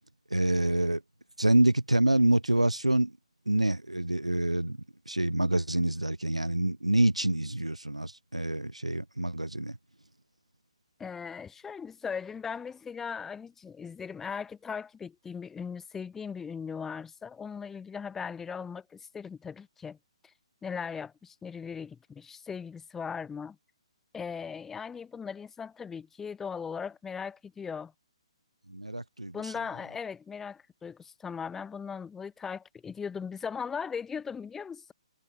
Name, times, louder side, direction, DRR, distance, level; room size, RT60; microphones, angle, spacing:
voice 1, 0.3-1.0 1.4-3.1 3.5-4.8 5.1-9.8 28.7-29.5, right 1 dB, 90° right, 2.1 m, -26 dB
voice 2, 11.0-20.0 20.6-23.6 24.1-27.9 29.3-34.9, left 6 dB, 10° left, 3.0 m, -38 dB
figure-of-eight pair, 130°, 3 cm